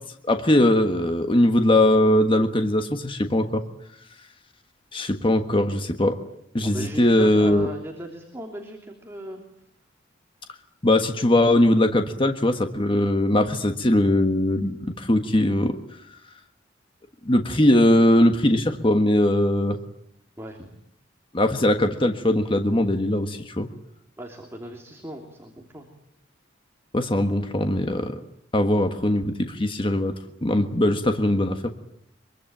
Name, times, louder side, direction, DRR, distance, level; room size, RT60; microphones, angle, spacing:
voice 1, 0.3-3.6 4.9-6.2 6.5-7.7 10.8-15.8 17.2-19.8 21.3-23.7 26.9-28.2 28.5-30.1 30.4-31.7, left 1 dB, 25° left, 6 dB, 1.5 m, -20 dB
voice 2, 6.6-9.4 20.4-20.7 24.2-25.9, right 1 dB, 15° right, 1 dB, 3.1 m, -37 dB
24.5 x 23.5 x 9.0 m, 0.73 s
head